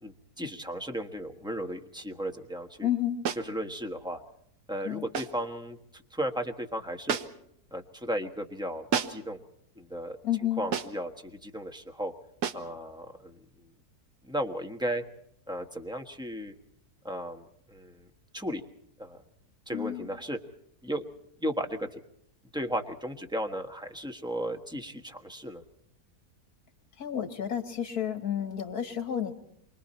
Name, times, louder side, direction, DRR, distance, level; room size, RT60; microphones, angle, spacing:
voice 1, 0.0-2.9 3.4-4.2 4.7-7.2 7.7-9.4 9.8-10.2 10.6-12.1 12.5-13.4 14.3-15.0 15.5-16.5 17.0-18.1 18.3-18.6 19.0-19.2 19.7-20.4 20.8-21.1 21.4-22.0 22.5-25.6, equal, 5° right, 4 dB, 1.2 m, -35 dB
voice 2, 2.8-3.2 4.8-5.0 10.2-10.6 19.7-20.1 27.0-29.3, left 10 dB, 70° left, 7 dB, 2.3 m, -31 dB
sound 1, 3.2-3.5 5.1-5.4 7.1-7.5 8.9-9.3 10.7-11.1 12.4-12.7, right 7 dB, 90° right, 1.6 m, -32 dB
28.0 x 24.5 x 4.4 m, 0.71 s
omnidirectional pair, 1.7 m